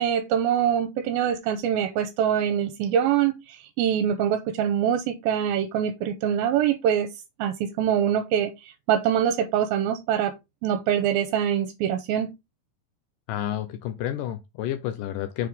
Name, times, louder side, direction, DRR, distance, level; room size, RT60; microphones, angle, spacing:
voice 1, 0.0-7.1 7.4-10.3 10.6-12.3, right 9 dB, 80° right, 2.4 m, -24 dB
voice 2, 13.3-15.5, left 11 dB, 85° left, 1.9 m, -30 dB
6.4 x 4.7 x 3.6 m
omnidirectional pair, 4.5 m